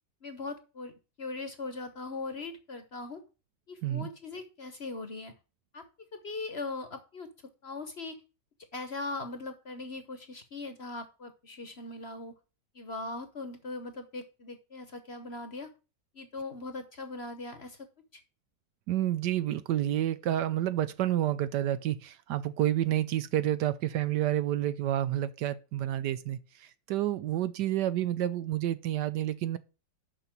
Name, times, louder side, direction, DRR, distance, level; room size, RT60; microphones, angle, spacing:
voice 1, 0.2-0.9 1.2-3.2 3.7-5.3 5.7-5.8 6.1-7.3 7.6-8.2 8.7-12.3 12.7-15.7 16.1-17.9 18.1-18.2, left 3 dB, 40° left, 1.1 m, -40 dB
voice 2, 18.9-29.6, right 12 dB, 70° right, 1.2 m, -29 dB
6.9 x 5.8 x 7.4 m
omnidirectional pair, 2.0 m